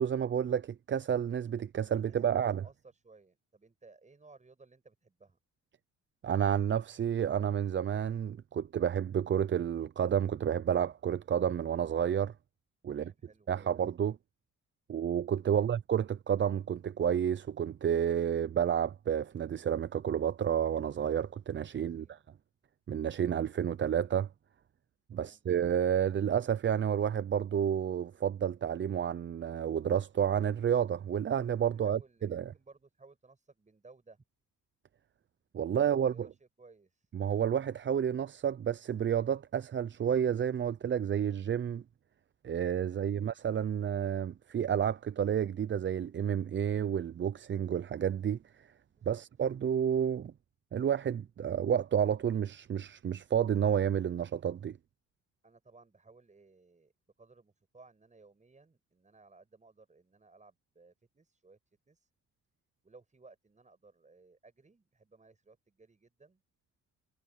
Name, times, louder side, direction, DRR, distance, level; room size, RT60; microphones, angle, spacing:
voice 1, 0.0-2.6 6.2-12.3 12.8-13.1 13.5-14.2 14.9-22.2 22.9-24.3 25.1-32.0 32.3-32.5 35.5-36.3 37.1-41.8 42.4-48.7 49.1-50.3 50.7-54.8, right 8 dB, 40° right, 0.6 m, -30 dB
voice 2, 1.9-5.4 12.9-13.8 15.5-15.8 21.8-22.2 25.1-25.5 31.7-34.2 35.7-37.1 48.9-49.2 55.4-56.9 57.2-62.1 62.8-66.4, right 3 dB, 25° right, 7.9 m, -60 dB
cardioid pair, 90°, 30 cm